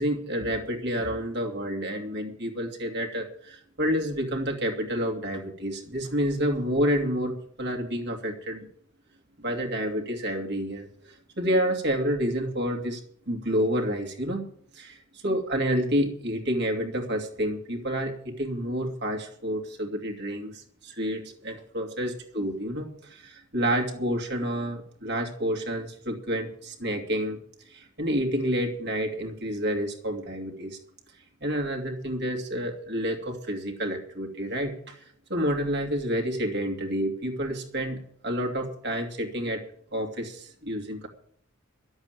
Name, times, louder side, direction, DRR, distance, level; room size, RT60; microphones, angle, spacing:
voice 1, 0.0-8.7 9.4-13.0 13.3-14.5 14.7-15.0 15.2-27.4 27.7-30.8 31.4-35.0 35.3-39.6 39.9-41.1, equal, 50° right, 2 dB, 2.6 m, -29 dB
12.0 x 8.0 x 9.2 m, 0.64 s
head